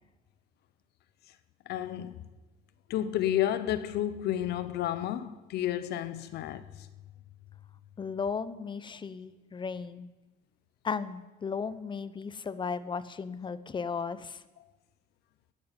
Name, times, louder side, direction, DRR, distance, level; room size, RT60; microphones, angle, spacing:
voice 1, 1.7-2.2 2.9-6.9, left 11 dB, 75° left, 0.9 m, -31 dB
voice 2, 8.0-10.1 10.8-14.4, left 5 dB, 30° left, 0.8 m, -35 dB
11.5 x 10.5 x 9.0 m
cardioid pair, 110°, 17 cm